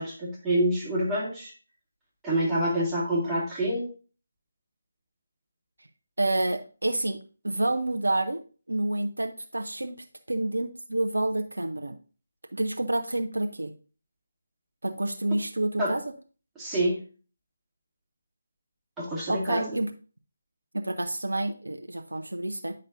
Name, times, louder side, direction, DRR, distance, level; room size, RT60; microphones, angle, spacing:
voice 1, 0.0-1.5 2.2-3.9 15.8-15.9 16.6-17.0 19.0-19.7, right 1 dB, 5° right, -8 dB, 2.2 m, -27 dB
voice 2, 6.2-7.2 7.4-8.4 8.7-10.0 10.3-12.0 12.5-13.7 14.8-16.0 19.3-19.9 20.7-22.7, right 1 dB, 75° right, 7 dB, 0.7 m, -28 dB
9.5 x 5.4 x 2.6 m, 0.37 s
figure-of-eight pair, 150°, 0 cm